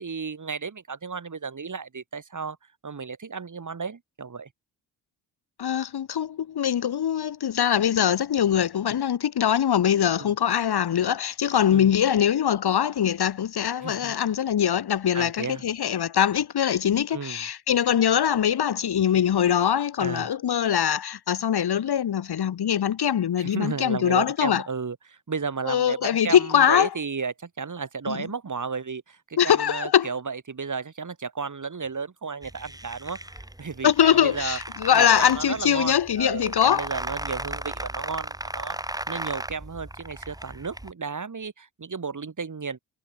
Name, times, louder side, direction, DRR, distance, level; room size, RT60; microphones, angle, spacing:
voice 1, 0.0-2.6 2.8-4.5 10.2-10.3 11.7-11.9 13.8-14.1 15.1-15.6 17.1-17.4 20.0-20.3 23.4-34.6 34.9-42.8, right 5 dB, 40° right, 4.7 m, -33 dB
voice 2, 5.6-24.6 25.7-26.9 28.1-28.2 29.4-30.1 33.8-36.9, left 9 dB, 55° left, 1.7 m, -22 dB
sound 1, 32.4-40.9, right 1 dB, 10° right, 4.6 m, -36 dB
supercardioid pair, 50°, 46 cm